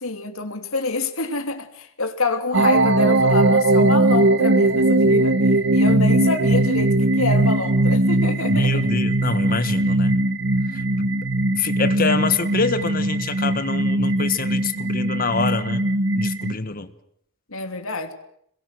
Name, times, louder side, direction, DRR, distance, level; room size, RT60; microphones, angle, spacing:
voice 1, 0.0-5.4 5.7-8.8 17.5-18.1, left 3 dB, 80° left, 2.9 m, -27 dB
sound 1, 2.5-16.5, right 2 dB, 55° right, 1.1 m, -19 dB
voice 2, 8.5-10.2 10.7-10.8 11.5-15.8 16.1-16.9, left 4 dB, 40° left, 1.5 m, -25 dB
27.5 x 22.0 x 7.9 m
head